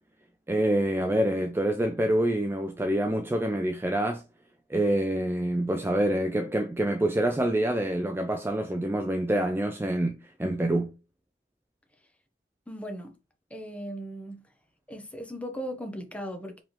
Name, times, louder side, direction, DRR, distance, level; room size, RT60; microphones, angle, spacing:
voice 1, 0.5-4.2 4.7-10.9, right 1 dB, 15° right, 0.4 m, -26 dB
voice 2, 12.7-13.1 13.5-14.4 14.9-16.6, equal, 5° left, 0.9 m, -37 dB
5.0 x 3.5 x 2.9 m
head